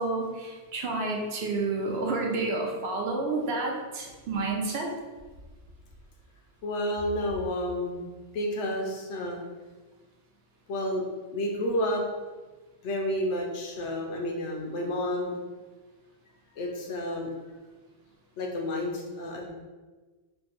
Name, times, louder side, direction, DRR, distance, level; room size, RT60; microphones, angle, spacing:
voice 1, 0.0-4.9, right 3 dB, 70° right, 0 dB, 0.8 m, -30 dB
voice 2, 6.6-8.0 8.3-9.4 10.7-11.1 11.3-12.0 12.8-15.4 16.5-17.3 18.4-19.5, left 1 dB, 85° left, -1 dB, 0.9 m, -30 dB
3.1 x 2.1 x 3.4 m, 1.3 s
omnidirectional pair, 1.2 m